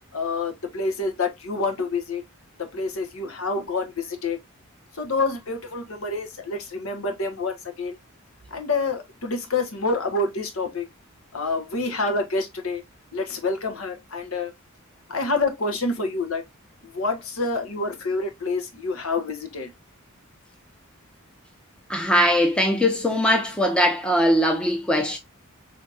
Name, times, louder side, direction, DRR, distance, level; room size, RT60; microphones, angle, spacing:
voice 1, 0.1-2.2 2.6-4.4 4.9-8.0 8.5-10.9 11.3-12.8 13.1-14.5 15.1-16.4 16.8-19.7, left 3 dB, 70° left, 1.0 m, -27 dB
voice 2, 21.9-25.2, equal, 5° left, 0.7 m, -21 dB
5.0 x 2.8 x 2.4 m
head